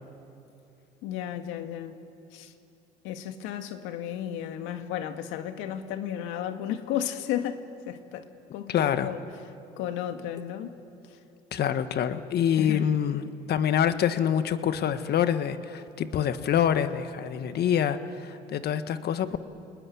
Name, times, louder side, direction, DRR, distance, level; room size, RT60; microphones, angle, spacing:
voice 1, 1.0-2.0 2.3-2.5 3.0-9.2 9.8-10.8 12.6-12.8, left 10 dB, 75° left, 7 dB, 1.9 m, -33 dB
voice 2, 8.7-9.1 11.5-19.4, left 9 dB, 55° left, 11 dB, 1.5 m, -26 dB
29.5 x 20.0 x 9.5 m, 2.7 s
supercardioid pair, 80°, 20 cm